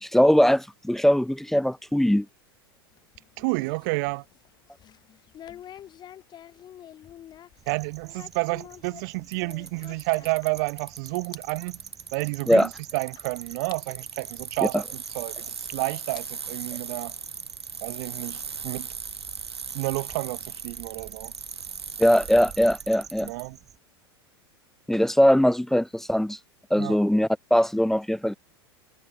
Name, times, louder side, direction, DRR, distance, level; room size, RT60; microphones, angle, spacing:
voice 1, 0.0-2.3 12.5-12.7 22.0-23.3 24.9-26.4 26.7-28.4, equal, ahead, 0.7 m, -21 dB
sound 1, 2.9-10.9 11.1-11.4 11.7-11.8 12.6-12.7 13.2-13.3 13.7-13.8 15.2-15.3 15.9-17.3, left 11 dB, 35° left, 1.8 m, -48 dB
voice 2, 3.4-4.2 7.7-11.8 12.1-17.1 17.8-18.9 19.7-21.3 23.2-23.6 26.8-27.0, right 29 dB, 55° right, 0.8 m, -30 dB
sound 2, 7.6-23.8, right 7 dB, 25° right, 2.8 m, -50 dB
Bicycle, 9.3-23.4, right 5 dB, 90° right, 1.2 m, -38 dB
hypercardioid pair, 90°, 13 cm